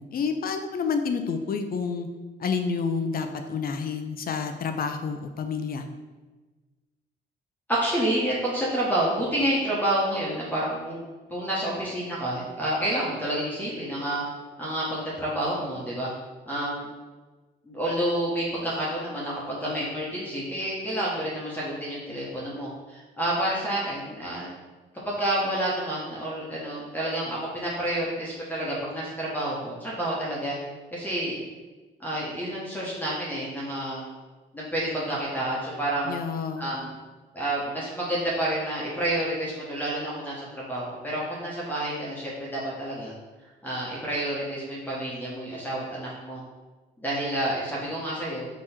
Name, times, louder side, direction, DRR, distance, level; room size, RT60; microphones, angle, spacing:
voice 1, 0.0-2.1 2.4-5.8 36.1-36.7, left 5 dB, 50° left, 7 dB, 0.5 m, -29 dB
voice 2, 7.7-11.0 11.3-14.2 14.6-16.1 16.5-16.9 17.7-24.5 25.0-30.6 30.9-31.4 32.0-34.0 34.5-36.1 36.6-36.9 37.3-43.1 43.6-46.4 47.0-48.5, right 1 dB, 10° left, -6 dB, 1.0 m, -29 dB
3.7 x 3.0 x 4.3 m, 1.3 s
cardioid pair, 90°, 20 cm